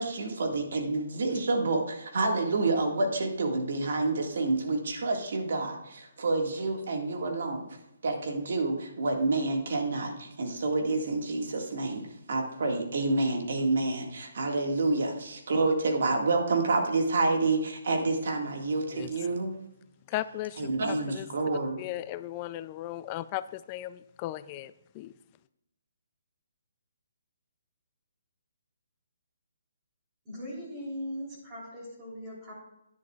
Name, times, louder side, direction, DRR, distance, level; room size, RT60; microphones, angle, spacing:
voice 1, 0.0-7.7 8.0-19.5 20.6-21.8, right 3 dB, 65° right, 1.8 m, -28 dB
voice 2, 20.1-21.3 21.8-25.1, left 14 dB, 25° left, 0.3 m, -37 dB
voice 3, 30.3-32.5, equal, 20° right, 3.3 m, -39 dB
10.5 x 10.5 x 2.4 m
hypercardioid pair, 160°, 0 cm